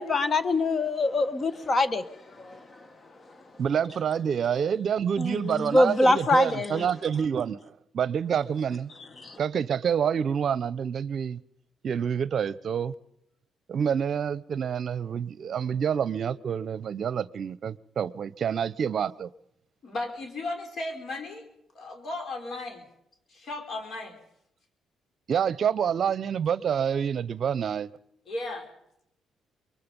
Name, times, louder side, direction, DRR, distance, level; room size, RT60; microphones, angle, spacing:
voice 1, 0.0-2.9 3.2-3.4 5.2-6.9 9.2-9.4, left 2 dB, 35° left, 1.5 m, -25 dB
voice 2, 3.6-8.9 9.4-11.4 11.8-12.9 13.7-19.3 25.3-27.9, right 8 dB, 55° right, 0.7 m, -27 dB
voice 3, 19.8-21.5 21.7-22.8 23.3-24.2 28.3-28.7, left 2 dB, 55° left, 4.7 m, -35 dB
24.5 x 22.0 x 5.4 m
cardioid pair, 90°, 0 cm